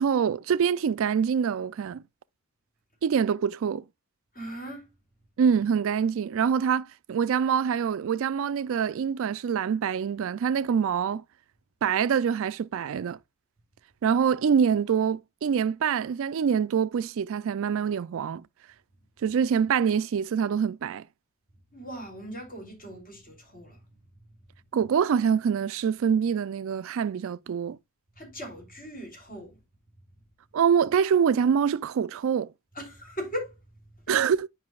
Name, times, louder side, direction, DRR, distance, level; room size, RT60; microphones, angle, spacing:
voice 1, 0.0-2.0 3.0-3.8 5.4-11.2 11.8-13.2 14.0-18.4 19.2-21.0 24.7-27.8 30.5-32.5 34.1-34.5, right 7 dB, 65° right, 0.3 m, -25 dB
voice 2, 4.3-4.9 21.7-23.8 28.2-29.6 32.7-33.6 34.1-34.2, equal, 40° left, 3.1 m, -39 dB
9.5 x 5.4 x 2.3 m
head